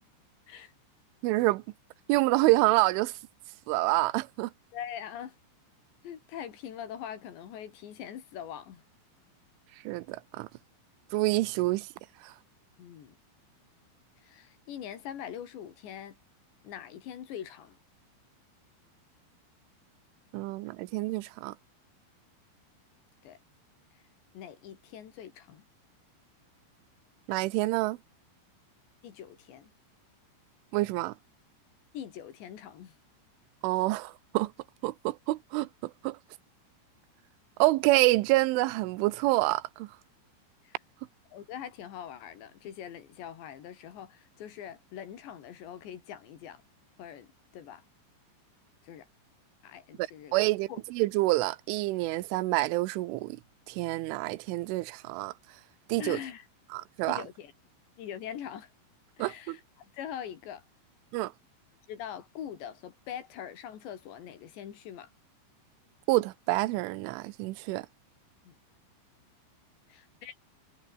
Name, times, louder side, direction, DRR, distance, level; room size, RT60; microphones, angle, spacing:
voice 1, 1.2-1.6 2.1-3.2 3.7-4.5 9.8-10.5 11.1-11.9 12.2-12.3 20.3-21.5 27.3-28.0 30.7-31.1 33.6-34.5 34.8-36.2 37.6-39.9 50.0-53.4 53.7-55.3 55.9-56.2 56.7-57.2 59.2-59.6 61.1-61.3 66.1-67.9, right 19 dB, 90° right, 3.3 m, -27 dB
voice 2, 4.7-5.4 6.0-8.8 12.8-13.2 14.2-16.2 16.6-17.8 23.2-23.4 24.3-25.6 29.0-29.7 31.9-32.9 40.6-40.8 41.3-46.6 47.0-47.3 47.5-47.8 48.8-49.1 49.6-50.3 50.7-50.8 56.0-56.5 57.1-57.5 58.0-58.7 59.2-60.6 61.9-65.1 68.4-68.6 69.9-70.4, left 9 dB, 70° left, 4.7 m, -42 dB
omnidirectional pair, 5.5 m